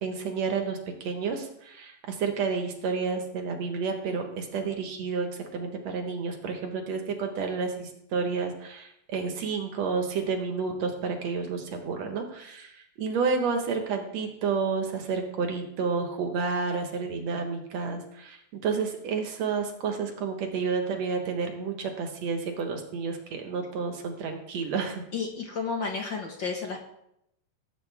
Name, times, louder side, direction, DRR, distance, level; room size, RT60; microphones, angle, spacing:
voice 1, 0.0-25.0, right 5 dB, 65° right, 4 dB, 2.5 m, -30 dB
voice 2, 25.1-26.8, left 5 dB, 45° left, 1 dB, 1.8 m, -32 dB
18.5 x 8.9 x 3.5 m, 0.78 s
omnidirectional pair, 3.3 m